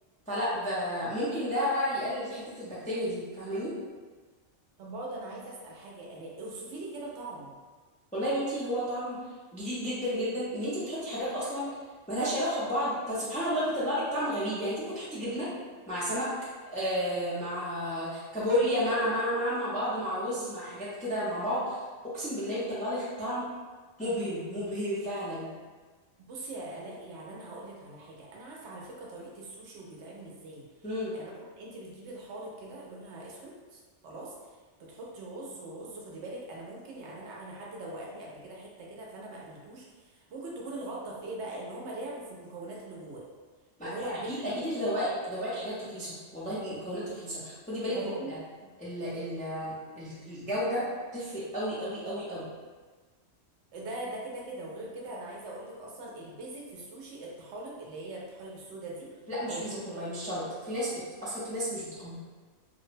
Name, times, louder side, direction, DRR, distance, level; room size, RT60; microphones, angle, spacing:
voice 1, 0.3-3.7 8.1-9.2 9.5-11.7 12.1-15.5 15.9-16.3 16.7-21.8 22.1-23.5 24.0-25.5 30.8-31.1 43.8-48.4 48.8-50.8 51.1-52.5 59.3-60.9 61.2-62.1, equal, 10° left, -10 dB, 0.4 m, -32 dB
voice 2, 4.8-7.6 26.3-30.6 31.1-34.3 34.8-43.2 43.8-44.5 47.9-48.4 48.6-48.7 53.7-59.1 59.5-60.0, right 2 dB, 75° right, -3 dB, 0.8 m, -41 dB
2.6 x 2.0 x 2.5 m, 1.4 s
omnidirectional pair, 1.2 m